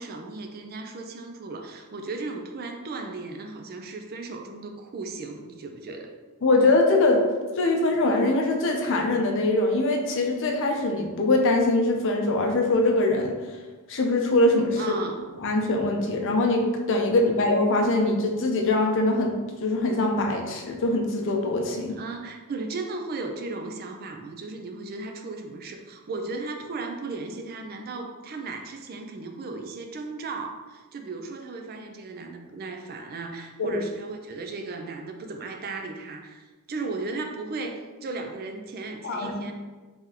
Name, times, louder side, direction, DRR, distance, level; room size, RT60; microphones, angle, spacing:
voice 1, 0.0-6.1 14.8-15.2 22.0-39.5, right 3 dB, 45° right, 4 dB, 0.4 m, -36 dB
voice 2, 6.4-7.2 7.6-13.4 13.9-15.0 15.4-19.3 19.6-22.0 33.6-33.7 39.0-39.5, left 2 dB, 60° left, 2 dB, 0.6 m, -23 dB
3.6 x 3.5 x 2.8 m, 1.3 s
head